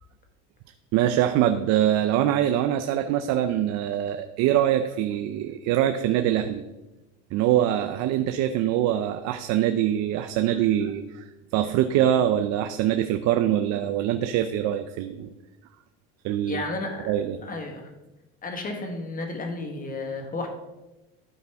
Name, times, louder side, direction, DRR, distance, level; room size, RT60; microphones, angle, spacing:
voice 1, 0.9-6.6 7.3-11.3 11.5-15.3 16.2-16.6 17.1-17.4, right 11 dB, 60° right, 8 dB, 0.6 m, -24 dB
voice 2, 16.5-17.1 17.4-17.9 18.4-20.5, left 3 dB, 30° left, 3 dB, 1.6 m, -32 dB
12.5 x 5.0 x 3.5 m, 1.0 s
cardioid pair, 120°, 30 cm